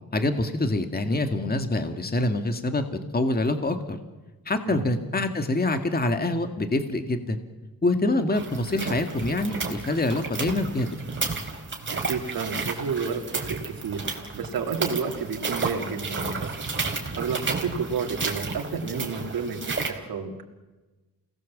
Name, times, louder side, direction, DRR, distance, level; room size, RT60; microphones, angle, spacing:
voice 1, 0.1-4.0 4.5-7.4 7.8-11.0, left 2 dB, 25° left, 7 dB, 2.0 m, -25 dB
sound 1, 8.3-19.9, right 4 dB, 35° right, 4.2 m, -32 dB
voice 2, 11.9-16.5 17.1-20.4, right 5 dB, 85° right, 4 dB, 2.5 m, -31 dB
29.0 x 19.0 x 7.4 m, 1.2 s
cardioid pair, 90°, 34 cm